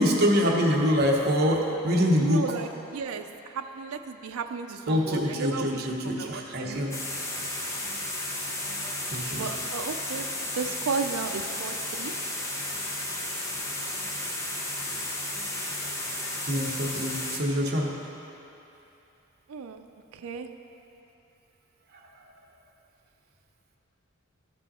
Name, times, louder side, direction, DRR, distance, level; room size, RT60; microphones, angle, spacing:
voice 1, 0.0-2.6 4.9-6.9 9.1-9.5 16.5-17.9, equal, 45° right, -1 dB, 1.0 m, -25 dB
voice 2, 2.2-7.0 9.3-10.3 10.6-12.1 19.5-20.5, right 5 dB, 85° right, 6 dB, 0.4 m, -34 dB
sound 1, 6.9-17.4, left 1 dB, 15° left, 0.8 m, -33 dB
13.5 x 5.4 x 4.2 m, 2.9 s
head